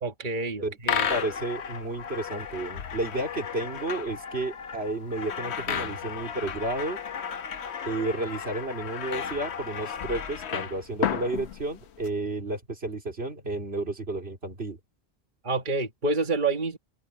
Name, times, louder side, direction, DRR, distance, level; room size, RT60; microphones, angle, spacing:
voice 1, 0.0-1.1 15.4-16.8, right 3 dB, 50° right, 1.7 m, -28 dB
sound 1, 0.8-12.1, left 8 dB, 85° left, 1.1 m, -33 dB
voice 2, 1.1-7.0 7.8-14.8, right 2 dB, 70° right, 3.7 m, -32 dB
open air
omnidirectional pair, 1.1 m